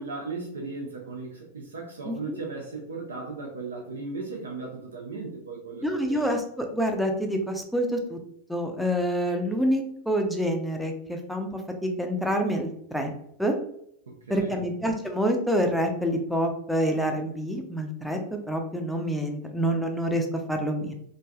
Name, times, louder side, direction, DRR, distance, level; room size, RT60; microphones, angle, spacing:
voice 1, 0.0-6.3 14.1-14.7, right 3 dB, 70° right, 0 dB, 0.5 m, -37 dB
voice 2, 2.1-2.4 5.8-8.2 8.5-13.1 13.4-13.6 14.3-20.9, equal, ahead, 3 dB, 0.5 m, -27 dB
3.2 x 2.5 x 2.2 m, 0.72 s
figure-of-eight pair, 90°, 0 cm